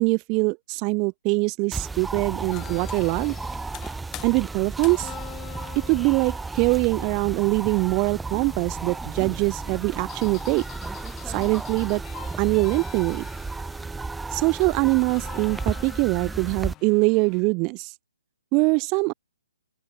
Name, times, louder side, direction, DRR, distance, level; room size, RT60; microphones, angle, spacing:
voice 1, 0.0-3.3 4.2-5.1 5.9-10.6 11.3-12.0 12.4-13.3 14.3-17.9 18.5-19.1, right 30 dB, 25° right, 0.7 m, -23 dB
sound 1, 1.7-16.7, right 3 dB, 5° right, 1.7 m, -34 dB
sound 2, 2.5-17.4, left 15 dB, 20° left, 4.6 m, -45 dB
open air
figure-of-eight pair, 130°, 0 cm